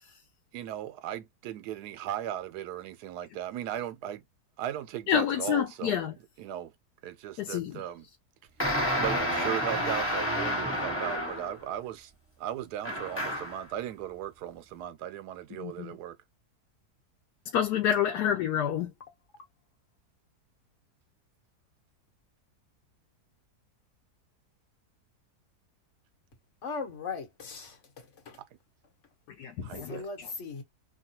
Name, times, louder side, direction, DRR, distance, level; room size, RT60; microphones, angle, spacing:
voice 1, 0.5-4.2 4.6-6.0 6.4-6.7 7.0-8.1 9.0-12.1 12.4-16.2 29.6-30.1, right 11 dB, 85° right, 1.2 m, -37 dB
voice 2, 5.1-6.1 7.4-7.8 15.6-16.0 17.5-18.9 29.4-30.0, left 9 dB, 85° left, 1.1 m, -28 dB
sound 1, 8.6-11.6 12.8-13.6, equal, 10° left, 1.1 m, -30 dB
voice 3, 26.6-28.4 29.8-30.6, left 4 dB, 55° left, 1.2 m, -39 dB
2.9 x 2.3 x 2.8 m
omnidirectional pair, 1.7 m